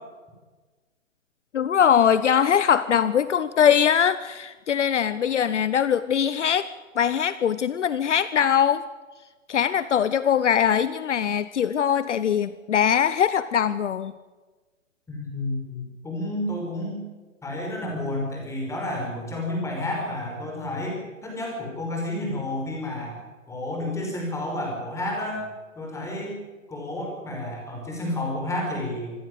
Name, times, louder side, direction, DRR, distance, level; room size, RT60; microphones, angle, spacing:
voice 1, 1.5-6.7 7.0-8.8 9.5-14.1, left 8 dB, 60° left, 15 dB, 0.9 m, -21 dB
voice 2, 15.1-17.0 17.4-23.1 23.5-25.5 25.8-26.3 26.7-29.1, left 1 dB, 5° left, 0 dB, 5.6 m, -30 dB
26.0 x 12.5 x 8.2 m, 1.3 s
hypercardioid pair, 140°, 40 cm